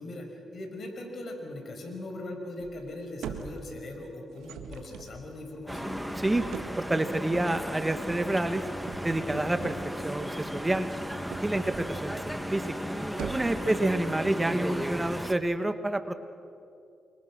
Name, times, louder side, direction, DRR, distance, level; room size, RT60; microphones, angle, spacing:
voice 1, 0.0-6.0 13.4-13.8, left 1 dB, 60° left, 3 dB, 5.8 m, -40 dB
sound 1, 2.6-2.9 3.2-3.9 4.3-6.9 8.2-8.4 8.7-9.8 11.0-11.9 12.2-12.7 13.0-13.7, right 7 dB, 85° right, 1.6 m, -42 dB
sound 2, 5.7-15.3, equal, 5° right, 1.6 m, -35 dB
voice 2, 6.8-8.7 9.0-9.8 10.0-10.9 11.4-12.8 13.2-16.1, right 1 dB, 20° right, 9 dB, 1.9 m, -28 dB
28.5 x 24.5 x 6.3 m, 2.5 s
cardioid pair, 60°, 0 cm